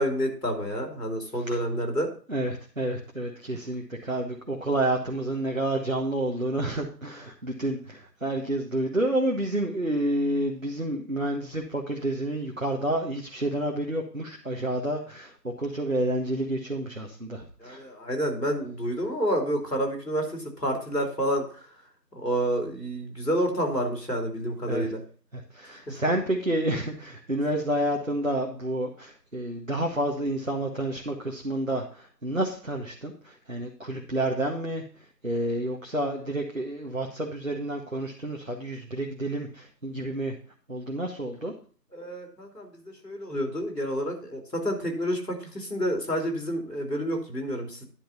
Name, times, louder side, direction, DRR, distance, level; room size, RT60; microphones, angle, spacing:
voice 1, 0.0-2.1 17.6-21.4 22.2-25.0 25.9-26.0 41.9-47.8, equal, 70° left, 2 dB, 3.4 m, -29 dB
voice 2, 2.3-17.9 24.7-24.9 25.3-40.3 40.7-41.5, right 1 dB, 50° right, 1 dB, 1.3 m, -29 dB
10.5 x 4.2 x 7.0 m, 0.41 s
figure-of-eight pair, 180°, 49 cm